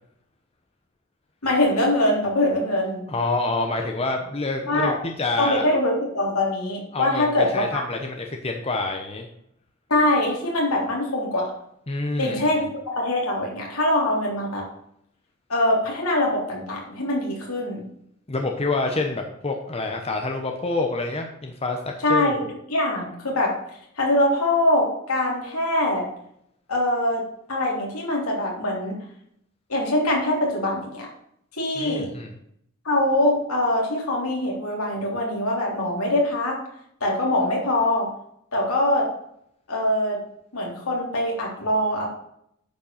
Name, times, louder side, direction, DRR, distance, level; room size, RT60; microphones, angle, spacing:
voice 1, 1.4-3.0 4.7-4.9 5.4-7.8 9.9-11.5 12.2-12.6 12.9-14.7 15.5-17.8 22.0-23.5 24.0-26.0 26.7-27.2 27.5-29.0 29.7-31.1 31.5-32.1 32.9-36.6 37.0-38.1 38.5-39.1 39.7-40.2 40.5-42.1, left 1 dB, 70° left, -2 dB, 3.5 m, -23 dB
voice 2, 3.1-5.6 6.9-9.3 11.9-12.4 18.3-21.8 22.1-22.3 31.8-32.3, left 3 dB, 25° left, 3 dB, 0.9 m, -27 dB
9.1 x 5.3 x 7.0 m, 0.72 s
head